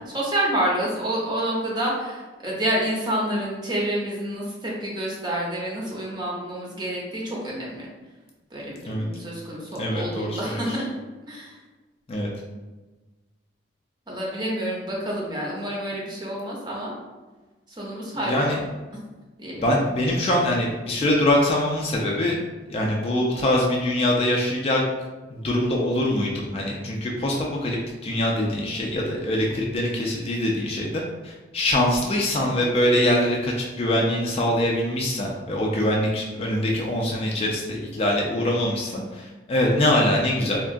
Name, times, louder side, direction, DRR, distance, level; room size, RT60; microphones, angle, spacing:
voice 1, 0.1-7.9 8.5-10.9 11.3-11.5 14.1-17.0 17.8-18.5 19.4-19.6, right 1 dB, 20° right, -4 dB, 0.6 m, -28 dB
voice 2, 9.8-10.8 12.1-12.3 18.3-18.6 19.6-22.4 22.7-24.8 25.3-27.8 28.0-40.6, left 1 dB, 30° left, -2 dB, 0.3 m, -23 dB
3.6 x 2.3 x 2.5 m, 1.2 s
head